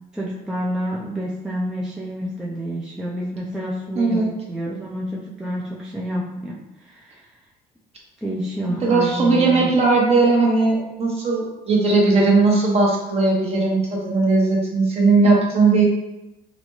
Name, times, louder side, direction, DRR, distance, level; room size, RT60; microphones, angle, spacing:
voice 1, 0.1-7.2 8.2-9.7, equal, 5° right, -5 dB, 0.4 m, -29 dB
voice 2, 4.0-4.3 8.8-15.9, right 3 dB, 40° right, -3 dB, 0.8 m, -18 dB
3.9 x 2.2 x 3.0 m, 0.96 s
cardioid pair, 110°, 17 cm